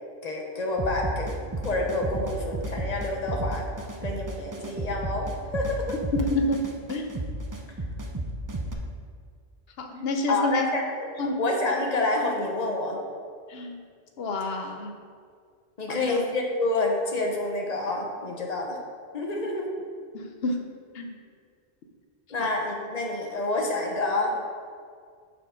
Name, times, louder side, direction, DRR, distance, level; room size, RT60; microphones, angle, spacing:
voice 1, 0.2-1.3 1.6-3.7 4.0-5.8 10.3-10.8 11.4-13.0 15.8-18.8 19.1-19.7 22.3-24.3, left 2 dB, 40° left, 1 dB, 1.0 m, -28 dB
sound 1, 0.8-8.7, right 1 dB, 30° right, 0.4 m, -32 dB
voice 2, 6.1-7.2 9.8-10.7 11.2-11.4 13.5-13.8 14.2-15.0 15.9-16.2 20.1-20.7 20.9-21.1 22.4-22.6, left 2 dB, 70° left, 4 dB, 0.9 m, -29 dB
6.2 x 4.8 x 5.0 m, 2.1 s
omnidirectional pair, 1.1 m